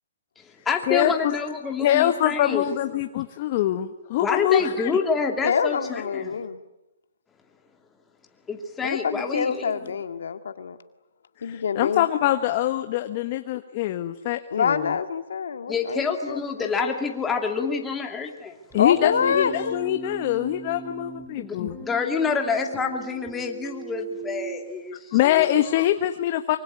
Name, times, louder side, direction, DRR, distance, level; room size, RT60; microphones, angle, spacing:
voice 1, 0.4-2.6 4.2-6.4 8.5-10.0 15.7-18.5 21.4-25.6, left 5 dB, 10° left, 3 dB, 2.7 m, -28 dB
voice 2, 0.9-1.4 1.8-4.9 11.4-14.9 18.7-21.8 25.1-26.6, left 12 dB, 35° left, 8 dB, 1.2 m, -24 dB
voice 3, 5.4-6.6 8.8-10.8 11.4-12.1 14.5-16.7 18.7-19.8, left 6 dB, 75° left, 8 dB, 2.0 m, -26 dB
Keyboard (musical), 18.7-24.7, right 6 dB, 10° right, 6.5 m, -39 dB
24.5 x 24.5 x 9.6 m, 0.95 s
hypercardioid pair, 155°, 0 cm